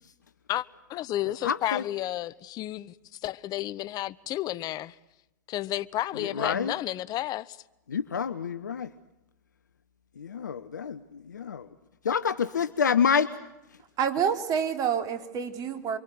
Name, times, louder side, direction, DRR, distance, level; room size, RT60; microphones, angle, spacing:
voice 1, 0.5-2.9 3.2-5.0 5.5-7.6, left 14 dB, 45° left, 1.2 m, -32 dB
voice 2, 1.4-1.8 6.4-6.7 7.9-8.9 10.2-11.0 11.3-11.7 12.0-13.3, left 7 dB, 90° left, 1.0 m, -27 dB
voice 3, 14.0-16.0, right 7 dB, 40° right, 3.7 m, -28 dB
28.5 x 24.0 x 8.0 m
hypercardioid pair, 95°, 9 cm